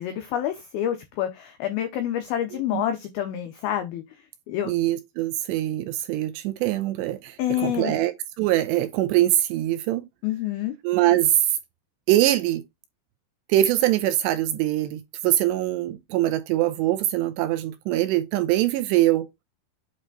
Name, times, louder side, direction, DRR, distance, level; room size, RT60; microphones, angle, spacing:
voice 1, 0.0-4.0 4.5-4.7 7.4-8.0 10.2-10.7, left 11 dB, 85° left, 2.1 m, -28 dB
voice 2, 4.7-10.1 10.8-11.5 12.1-12.6 13.5-19.4, right 14 dB, 80° right, 2.6 m, -23 dB
8.6 x 3.3 x 3.9 m
omnidirectional pair, 5.4 m